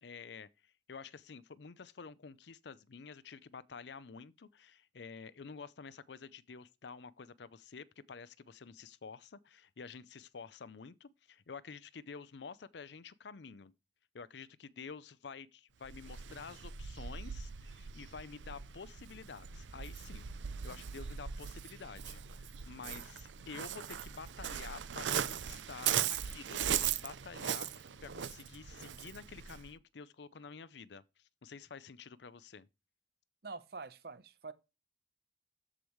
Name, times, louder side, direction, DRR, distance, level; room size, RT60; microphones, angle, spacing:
voice 1, 0.0-13.7 14.1-20.2 20.6-32.7, left 5 dB, 70° left, 0.5 m, -50 dB
Waves surf, 15.8-29.7, right 9 dB, 90° right, 0.6 m, -39 dB
voice 2, 33.4-34.5, right 4 dB, 60° right, 0.9 m, -46 dB
13.5 x 5.0 x 3.1 m
head